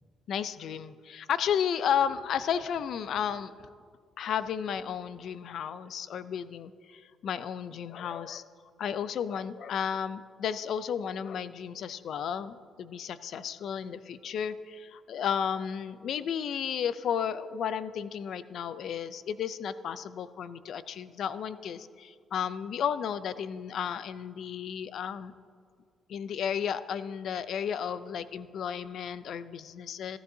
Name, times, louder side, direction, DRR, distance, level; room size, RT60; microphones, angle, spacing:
voice 1, 0.3-3.5 4.2-8.5 8.8-25.3 26.1-30.2, left 8 dB, 70° left, 14 dB, 0.5 m, -33 dB
14.5 x 14.0 x 2.8 m, 2.1 s
cardioid pair, 90°, 0 cm